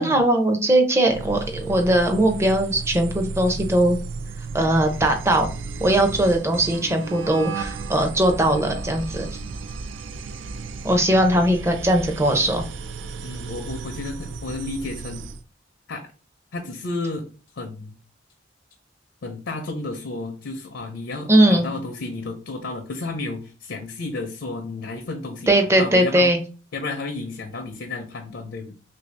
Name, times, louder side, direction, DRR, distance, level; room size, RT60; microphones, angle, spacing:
voice 1, 0.0-4.0 4.5-5.5 5.8-9.3 10.8-12.6 21.3-21.7 25.5-26.4, right 1 dB, 15° right, 4 dB, 0.5 m, -19 dB
sound 1, 1.1-15.4, right 4 dB, 85° right, 0.4 m, -34 dB
voice 2, 13.2-15.3 15.9-16.0 16.5-17.3 17.5-17.9 19.2-26.3 26.7-28.7, left 3 dB, 75° left, 3 dB, 0.5 m, -32 dB
3.1 x 2.6 x 3.2 m, 0.37 s
head